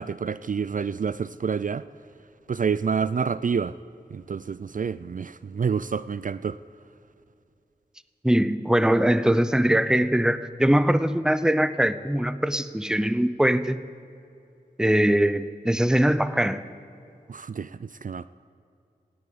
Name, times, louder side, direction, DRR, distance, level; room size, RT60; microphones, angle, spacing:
voice 1, 0.0-1.8 2.5-3.7 4.1-6.6 17.3-18.3, right 6 dB, 55° right, 16 dB, 0.4 m, -28 dB
voice 2, 8.2-13.8 14.8-16.6, right 1 dB, 5° right, 14 dB, 0.7 m, -22 dB
17.5 x 8.5 x 8.6 m, 2.6 s
cardioid pair, 45°, 17 cm